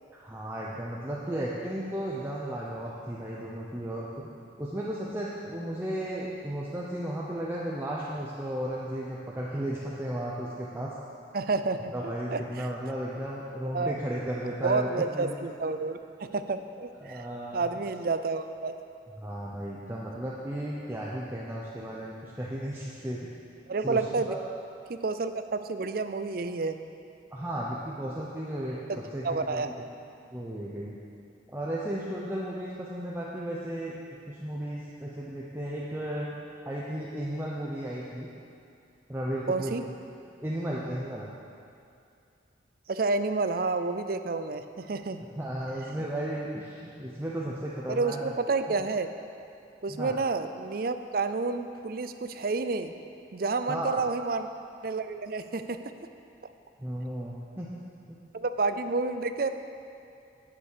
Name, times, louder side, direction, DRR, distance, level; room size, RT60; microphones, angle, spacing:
voice 1, 0.1-4.1 4.6-10.9 11.9-14.9 15.2-15.3 17.0-17.6 19.2-23.3 23.8-24.0 24.3-24.4 27.3-29.6 30.3-30.9 31.5-33.9 34.3-36.4 36.7-38.3 39.1-39.9 40.4-41.3 45.4-48.2 49.9-50.1 53.7-54.0 56.8-57.7 58.1-58.2, right 1 dB, 10° right, -5 dB, 0.7 m, -34 dB
voice 2, 11.3-12.7 13.7-13.9 14.4-17.3 17.5-18.8 23.7-24.4 24.9-26.8 28.9-29.9 39.5-39.8 42.9-45.2 47.9-49.1 49.8-52.9 53.3-54.5 54.8-55.8 58.3-59.5, right 3 dB, 50° right, 9 dB, 0.5 m, -30 dB
10.0 x 6.9 x 6.7 m, 2.5 s
head